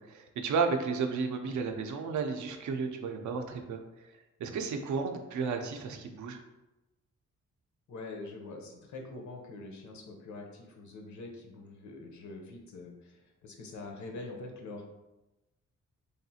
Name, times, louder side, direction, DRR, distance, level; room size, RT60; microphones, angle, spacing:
voice 1, 0.0-4.1 4.4-6.4, right 5 dB, 80° right, 5 dB, 0.5 m, -33 dB
voice 2, 7.9-14.8, left 2 dB, 75° left, 2 dB, 0.7 m, -44 dB
3.4 x 2.4 x 2.7 m, 1.0 s
wide cardioid pair, 175°, 29 cm